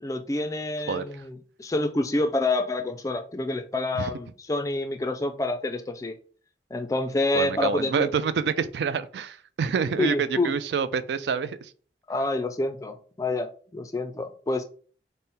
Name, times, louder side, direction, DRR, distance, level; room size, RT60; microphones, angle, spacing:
voice 1, 0.0-6.2 6.7-8.1 10.0-10.5 12.1-14.6, left 2 dB, 20° left, 0.3 m, -28 dB
voice 2, 7.3-11.7, right 6 dB, 75° right, 0.3 m, -27 dB
4.1 x 2.1 x 3.6 m
head